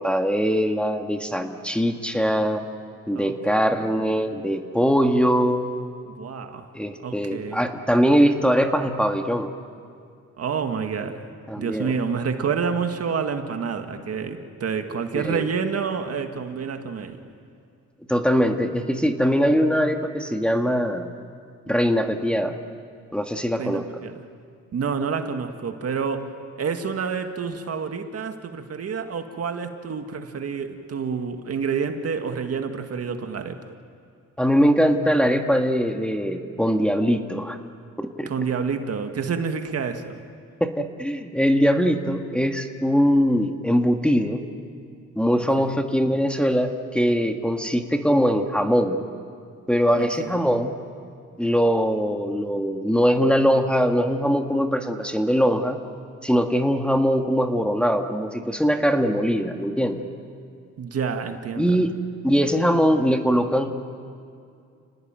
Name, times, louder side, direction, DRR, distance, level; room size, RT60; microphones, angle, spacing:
voice 1, 0.0-2.6 3.1-5.7 6.7-9.5 11.5-12.0 15.1-15.4 18.1-21.1 21.7-22.6 23.1-23.8 34.4-37.6 38.0-38.3 40.6-44.4 45.1-49.0 49.7-50.7 51.4-55.8 56.2-60.0 61.6-61.9 62.2-63.7, equal, 5° left, 4 dB, 1.8 m, -21 dB
voice 2, 3.1-3.9 6.1-7.6 10.4-11.2 11.6-17.2 23.6-24.2 24.7-33.6 38.3-40.2 45.4-45.7 49.9-50.5 60.8-61.8, right 6 dB, 55° right, 6 dB, 2.0 m, -29 dB
29.5 x 19.5 x 9.1 m, 2.3 s
cardioid pair, 90°, 30 cm